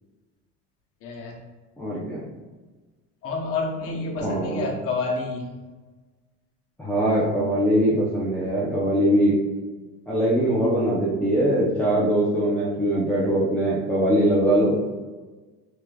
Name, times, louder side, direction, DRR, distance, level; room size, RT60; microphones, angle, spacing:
voice 1, 1.0-1.4 3.2-5.5, left 3 dB, 50° left, 0 dB, 0.9 m, -29 dB
voice 2, 1.8-2.2 4.2-4.7 6.8-9.3 10.1-14.8, right 1 dB, 5° left, -9 dB, 0.6 m, -22 dB
4.9 x 3.5 x 2.3 m, 1.3 s
cardioid pair, 160°, 29 cm